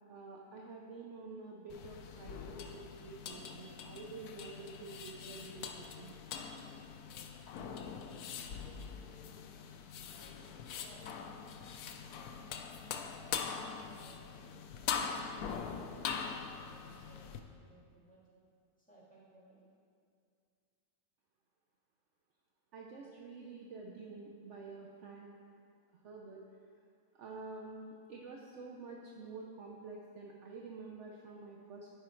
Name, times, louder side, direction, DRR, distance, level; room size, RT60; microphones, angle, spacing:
voice 1, 0.1-5.7 6.0-6.2 22.7-25.3 26.0-26.4 27.1-31.9, right 3 dB, 60° right, -1 dB, 0.9 m, -48 dB
sound 1, 1.7-17.4, left 6 dB, 85° left, 1.1 m, -43 dB
voice 2, 10.7-11.3 12.1-15.2 15.8-18.2 18.8-19.7, right 2 dB, 5° left, -9 dB, 2.1 m, -62 dB
10.5 x 5.0 x 4.4 m, 2.3 s
omnidirectional pair, 1.6 m